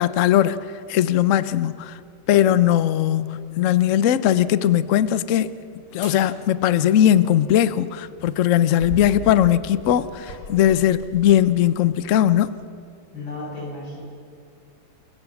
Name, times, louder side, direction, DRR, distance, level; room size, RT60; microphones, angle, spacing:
voice 1, 0.0-2.0 2.3-5.6 5.9-12.5, left 11 dB, 65° left, 0.7 m, -19 dB
sound 1, 5.9-6.2 7.9-11.4 12.1-12.3, equal, 50° left, 5.4 m, -39 dB
voice 2, 13.1-14.0, left 2 dB, 90° left, 7.6 m, -33 dB
29.5 x 15.5 x 7.2 m
omnidirectional pair, 2.2 m